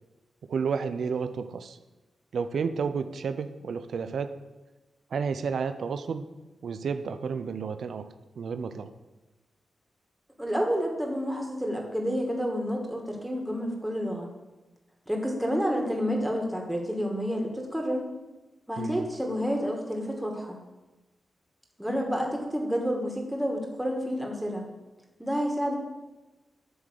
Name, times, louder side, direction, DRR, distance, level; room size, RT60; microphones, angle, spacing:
voice 1, 0.5-1.8 2.3-4.4 5.1-6.3 6.6-8.1 8.4-8.9 18.8-19.1, right 5 dB, 75° right, 10 dB, 0.5 m, -31 dB
voice 2, 10.4-14.3 15.1-18.1 18.7-20.6 21.8-24.7 25.2-25.8, equal, 5° right, 1 dB, 2.1 m, -29 dB
11.0 x 3.7 x 6.6 m, 1.1 s
cardioid pair, 55°, 0 cm